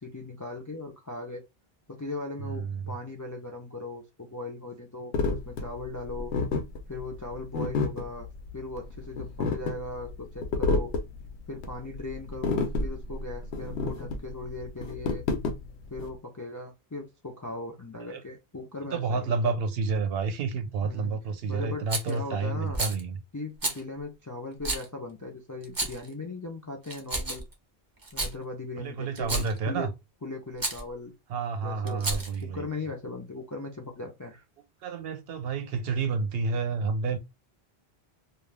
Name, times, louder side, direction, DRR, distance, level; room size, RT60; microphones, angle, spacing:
voice 1, 0.0-1.4 1.9-6.3 6.9-8.3 8.5-10.9 11.5-15.2 15.9-19.5 20.8-21.2 21.5-22.8 23.3-27.4 28.1-29.9 30.2-31.1 31.6-34.4, left 2 dB, 30° left, 0.3 m, -38 dB
voice 2, 2.4-3.0 18.1-18.2 18.9-23.2 28.8-29.9 31.3-32.7 34.8-37.2, right 4 dB, 70° right, 0.7 m, -30 dB
sound 1, 5.1-16.1, left 3 dB, 85° left, 0.9 m, -30 dB
Rattle, 21.9-22.2 22.7-23.0 23.6-23.8 24.6-24.9 25.6-26.1 26.8-27.5 28.0-28.3 29.2-29.6 30.6-30.8 31.9-32.4, right 2 dB, 25° right, 0.5 m, -31 dB
2.4 x 2.2 x 3.2 m
omnidirectional pair, 1.1 m